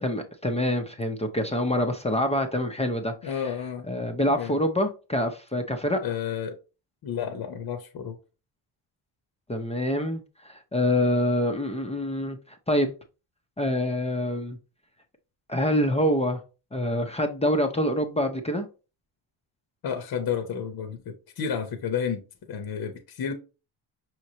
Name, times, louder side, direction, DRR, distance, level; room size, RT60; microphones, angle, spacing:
voice 1, 0.0-3.4 3.9-6.0 9.5-12.9 13.6-14.6 15.5-16.4 16.7-18.7, left 1 dB, 15° left, 0.5 m, -26 dB
voice 2, 3.2-3.9 4.4-4.6 6.0-6.6 7.0-8.1 19.8-22.2 22.5-23.3, left 7 dB, 45° left, 0.8 m, -31 dB
5.6 x 3.1 x 2.8 m
cardioid pair, 105°, 50 cm